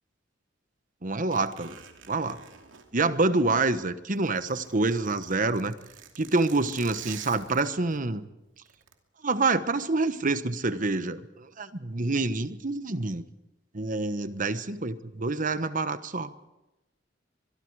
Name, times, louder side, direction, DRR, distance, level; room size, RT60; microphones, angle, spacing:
voice 1, 1.0-1.8 2.1-2.4 2.9-5.7 6.2-8.2 9.2-13.2 13.7-16.3, right 3 dB, 45° right, 12 dB, 1.2 m, -27 dB
Zipper (clothing), 1.3-3.7 4.0-8.0 8.6-8.9, right 8 dB, 90° right, 2.7 m, -48 dB
24.0 x 22.5 x 4.9 m, 0.97 s
head